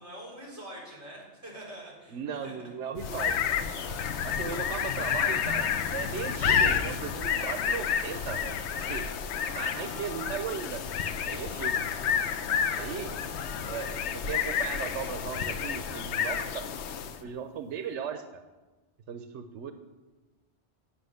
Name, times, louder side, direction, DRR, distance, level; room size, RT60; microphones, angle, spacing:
voice 1, 0.0-2.7 3.6-4.6 9.4-10.2 12.7-13.2, right 1 dB, 15° right, -5 dB, 4.0 m, -46 dB
voice 2, 2.1-3.4 4.2-9.1 9.6-10.8 11.2-11.8 12.7-13.1 13.6-16.8 17.0-18.4 19.1-19.7, right 7 dB, 85° right, 8 dB, 1.0 m, -37 dB
sound 1, 3.0-17.3, left 7 dB, 75° left, 0.9 m, -30 dB
8.7 x 7.7 x 6.4 m, 1.2 s
omnidirectional pair, 1.2 m